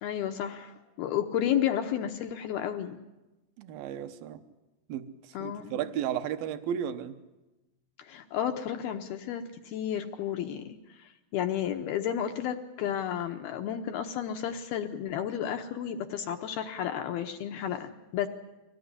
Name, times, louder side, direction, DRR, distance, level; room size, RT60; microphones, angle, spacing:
voice 1, 0.0-3.0 5.3-5.8 8.0-18.3, left 10 dB, 80° left, 5 dB, 2.3 m, -32 dB
voice 2, 3.6-4.4 4.9-5.1 5.4-7.2, right 9 dB, 70° right, 9 dB, 2.3 m, -33 dB
25.0 x 18.0 x 9.7 m, 1.0 s
omnidirectional pair, 5.5 m